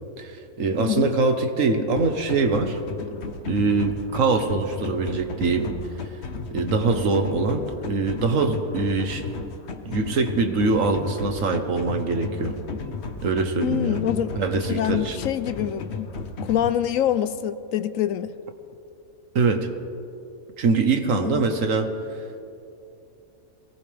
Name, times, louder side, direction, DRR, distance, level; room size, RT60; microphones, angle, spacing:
voice 1, 0.2-2.8 3.4-5.7 6.5-9.2 9.9-12.6 13.2-14.1 14.4-15.2 19.3-19.7 20.6-21.9, right 4 dB, 65° right, 6 dB, 1.5 m, -23 dB
voice 2, 0.8-1.1 13.6-14.3 14.7-16.1 16.4-18.3 21.2-21.4, left 11 dB, 75° left, 13 dB, 1.0 m, -25 dB
sound 1, 2.0-16.7, left 4 dB, 55° left, 1.2 m, -34 dB
23.0 x 18.5 x 3.4 m, 2.6 s
omnidirectional pair, 1.5 m